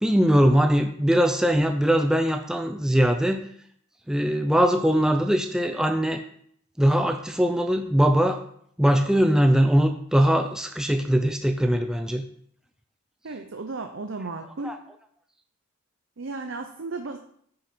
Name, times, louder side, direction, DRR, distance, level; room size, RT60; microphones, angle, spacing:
voice 1, 0.0-3.5 4.1-6.2 6.8-8.4 8.8-12.2 14.6-14.8, equal, 5° right, 5 dB, 0.5 m, -21 dB
voice 2, 13.2-14.8 16.2-17.2, right 3 dB, 65° right, 5 dB, 0.7 m, -34 dB
9.5 x 6.6 x 4.3 m, 0.64 s
head